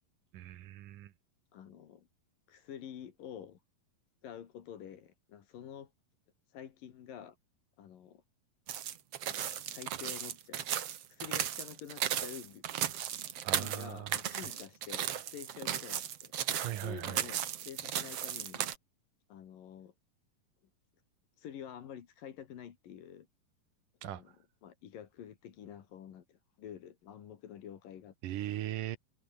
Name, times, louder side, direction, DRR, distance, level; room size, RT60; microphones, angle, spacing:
voice 1, 0.3-1.1 13.4-14.5 16.6-17.2 24.0-24.2 28.2-29.0, right 13 dB, 70° right, 2.7 m, -39 dB
voice 2, 1.5-2.1 2.5-3.6 4.2-5.9 6.5-7.4 7.8-8.2 9.3-10.7 11.1-12.7 13.5-16.3 16.7-18.7 19.3-19.9 21.4-23.3 24.0-24.4 24.6-28.4, left 9 dB, 70° left, 3.7 m, -48 dB
sound 1, 8.7-18.8, right 10 dB, 55° right, 2.0 m, -36 dB
omnidirectional pair, 4.1 m